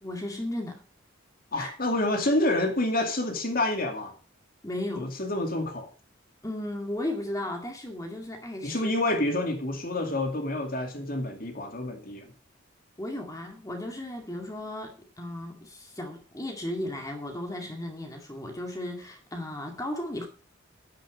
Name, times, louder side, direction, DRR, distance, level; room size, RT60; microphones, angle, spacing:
voice 1, 0.0-0.8 1.6-1.8 4.6-5.1 6.4-8.9 13.0-20.3, left 1 dB, 15° left, 3 dB, 2.1 m, -35 dB
voice 2, 1.5-4.1 5.0-5.9 8.6-12.3, left 1 dB, 45° left, 5 dB, 2.4 m, -28 dB
10.5 x 10.0 x 5.1 m, 0.36 s
head